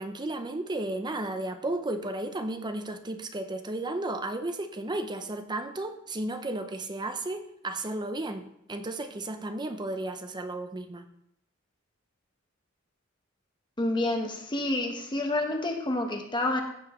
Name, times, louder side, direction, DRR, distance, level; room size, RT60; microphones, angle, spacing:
voice 1, 0.0-11.0, right 2 dB, 20° right, 8 dB, 0.6 m, -33 dB
voice 2, 13.8-16.6, left 2 dB, 25° left, 3 dB, 1.0 m, -28 dB
15.0 x 7.0 x 3.0 m, 0.75 s
head